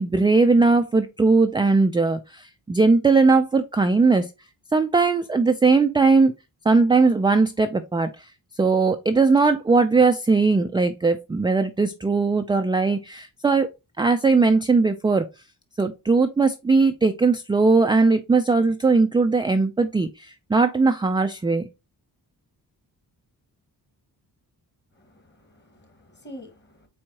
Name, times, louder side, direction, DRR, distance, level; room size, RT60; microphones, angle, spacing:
voice 1, 0.0-4.3 4.7-6.3 6.7-8.2 8.6-13.7 14.0-15.3 15.8-21.6, right 4 dB, 10° right, 0.3 m, -19 dB
voice 2, 24.9-26.9, equal, 25° left, 1.5 m, -46 dB
4.6 x 3.5 x 2.8 m
cardioid pair, 80°, 40 cm